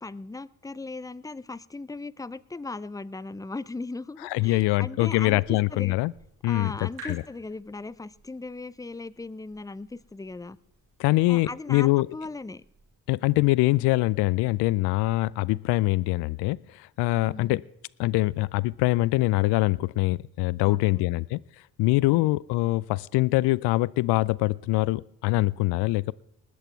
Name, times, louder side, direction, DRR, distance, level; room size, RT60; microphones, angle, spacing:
voice 1, 0.0-5.9 6.4-10.6 11.3-12.6 17.2-17.6 20.6-21.0, left 3 dB, 10° left, 18 dB, 0.5 m, -38 dB
voice 2, 4.2-6.1 6.4-7.2 11.0-12.1 13.1-17.6 18.0-21.4 21.8-26.1, left 20 dB, 70° left, 21 dB, 0.5 m, -24 dB
sound 1, 5.1-12.9, right 1 dB, 85° right, 5.6 m, -52 dB
20.0 x 8.3 x 4.5 m, 0.81 s
hypercardioid pair, 50°, 43 cm